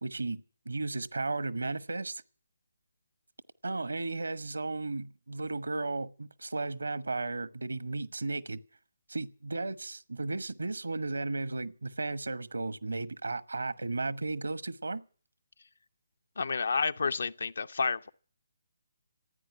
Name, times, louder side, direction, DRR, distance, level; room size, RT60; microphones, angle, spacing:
voice 1, 0.0-2.2 3.6-8.6 9.1-15.0, right 3 dB, 70° right, 1.1 m, -34 dB
voice 2, 16.4-18.1, left 4 dB, 60° left, 0.7 m, -30 dB
15.0 x 9.4 x 9.6 m
figure-of-eight pair, 140°, 0 cm